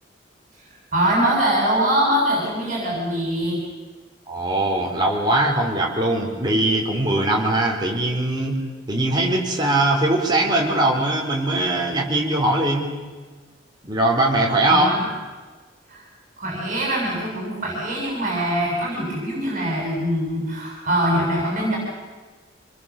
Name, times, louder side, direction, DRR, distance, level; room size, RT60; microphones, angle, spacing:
voice 1, 0.9-3.6 14.7-15.0 15.9-16.0 16.4-21.8, right 1 dB, 40° right, -3 dB, 7.5 m, -23 dB
voice 2, 4.3-8.6 8.9-12.9 13.8-14.9, right 1 dB, 20° right, -1 dB, 4.2 m, -21 dB
26.5 x 21.5 x 7.3 m, 1.4 s
head